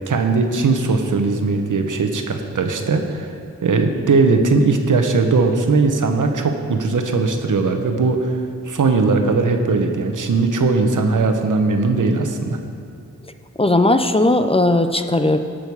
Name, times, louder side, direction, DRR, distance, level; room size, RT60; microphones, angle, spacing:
voice 1, 0.1-3.3 3.6-8.4 8.7-12.6, right 3 dB, 90° right, 5 dB, 1.0 m, -19 dB
voice 2, 13.6-15.4, left 2 dB, 20° left, 8 dB, 0.5 m, -17 dB
18.0 x 6.5 x 4.7 m, 2.4 s
wide cardioid pair, 105°, 30 cm